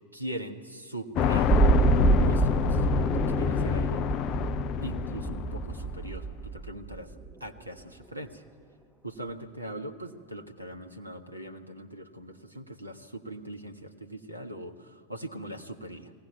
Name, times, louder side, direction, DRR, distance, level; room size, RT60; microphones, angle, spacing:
voice 1, 0.1-1.6 2.2-4.1 4.8-7.1 7.4-8.4 9.0-16.1, right 1 dB, 85° right, 5 dB, 1.3 m, -41 dB
sound 1, 1.2-6.1, left 8 dB, 35° left, 0.5 m, -27 dB
sound 2, 1.5-7.5 7.8-7.9, right 5 dB, 10° right, 1.2 m, -27 dB
22.0 x 17.5 x 9.4 m, 2.1 s
figure-of-eight pair, 90°, 0 cm